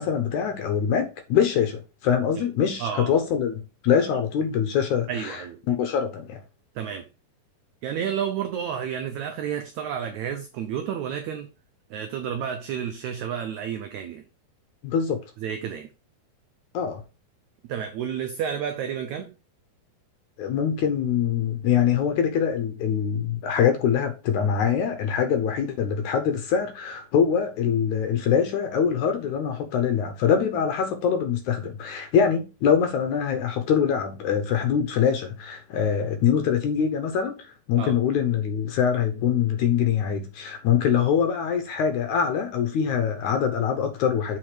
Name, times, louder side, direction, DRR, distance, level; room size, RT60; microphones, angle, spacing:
voice 1, 0.0-5.4 5.7-6.4 14.8-15.2 16.7-17.0 20.4-44.4, left 8 dB, 70° left, 2.0 m, -24 dB
voice 2, 2.8-3.1 5.1-5.6 6.7-7.1 7.8-11.5 11.9-14.2 15.4-15.9 17.7-19.3 37.8-38.0, right 8 dB, 85° right, 1.6 m, -31 dB
7.7 x 4.3 x 4.9 m
omnidirectional pair, 4.2 m